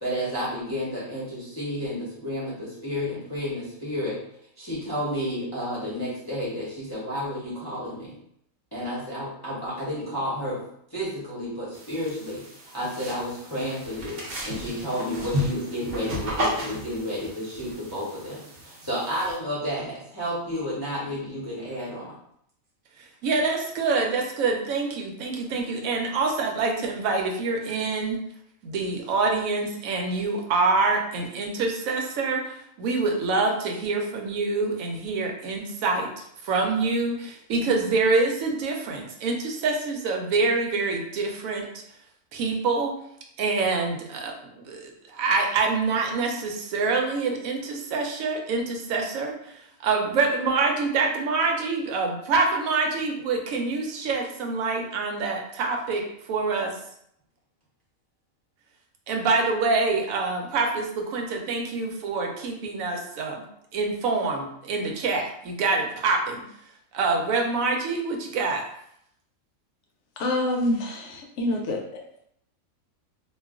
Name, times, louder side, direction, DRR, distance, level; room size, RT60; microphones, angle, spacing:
voice 1, 0.0-4.2 4.6-8.1 8.7-10.6 10.9-12.4 12.7-22.1, equal, 25° left, -9 dB, 0.6 m, -31 dB
sound 1, 11.7-19.4, equal, 55° right, 0.8 m, -34 dB
voice 2, 23.2-28.2 28.6-41.7 42.3-42.9 43.4-56.7 59.1-63.4 63.7-66.4 66.9-68.6, right 3 dB, 80° right, 2 dB, 1.0 m, -26 dB
voice 3, 70.2-72.0, left 1 dB, 65° left, 1 dB, 0.8 m, -27 dB
2.4 x 2.3 x 3.5 m, 0.72 s
omnidirectional pair, 1.4 m